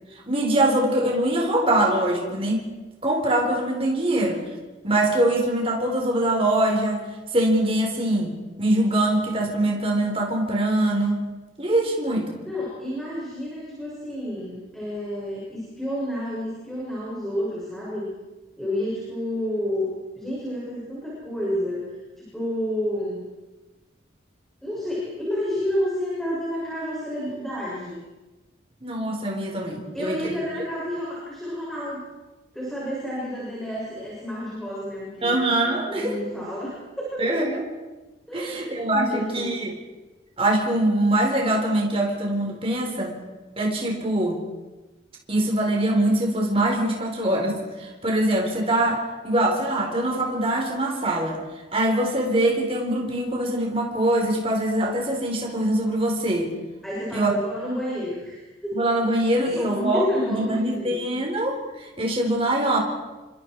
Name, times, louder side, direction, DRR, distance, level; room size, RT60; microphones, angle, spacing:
voice 1, 0.3-2.6 3.0-4.4 4.8-7.0 7.3-11.3 11.6-12.4 28.8-30.4 35.2-36.2 37.2-37.6 38.3-39.7 40.4-43.2 43.6-44.4 45.3-51.4 51.7-56.5 57.1-57.3 58.7-62.8, right 1 dB, 30° right, 0 dB, 4.3 m, -23 dB
voice 2, 12.4-18.1 18.6-21.9 22.2-23.2 24.6-28.0 29.9-32.1 32.5-35.3 35.9-37.4 38.3-39.5 56.8-58.7 59.3-61.0, equal, ahead, -7 dB, 7.1 m, -30 dB
28.5 x 25.5 x 4.8 m, 1.1 s
head